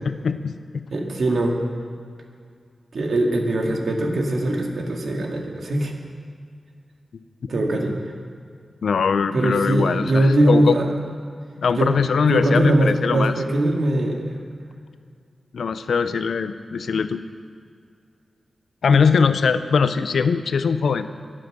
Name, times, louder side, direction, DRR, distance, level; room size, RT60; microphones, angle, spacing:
voice 1, 0.0-0.8 8.8-10.8 11.6-13.3 15.5-17.2 18.8-21.1, left 5 dB, 90° left, 11 dB, 0.7 m, -21 dB
voice 2, 0.9-1.6 2.9-5.9 7.5-7.9 9.3-10.9 11.7-11.9 12.3-14.3, right 1 dB, 70° right, 1 dB, 2.2 m, -21 dB
23.0 x 7.7 x 6.3 m, 2.3 s
wide cardioid pair, 100°, 0 cm